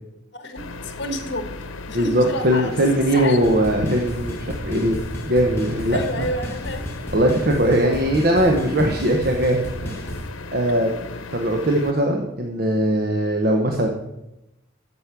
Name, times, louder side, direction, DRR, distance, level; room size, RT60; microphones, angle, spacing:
voice 1, 0.3-1.5 1.9-3.6 5.9-6.9, left 1 dB, 60° left, 7 dB, 1.3 m, -30 dB
sound 1, 0.6-11.9, left 3 dB, 90° left, 0.9 m, -37 dB
voice 2, 1.9-6.3 7.1-9.6 10.5-10.9 11.3-13.9, right 1 dB, 50° right, 2 dB, 0.9 m, -20 dB
sound 2, 3.4-10.3, equal, 10° left, 1.5 m, -32 dB
8.1 x 7.3 x 5.9 m, 0.89 s
head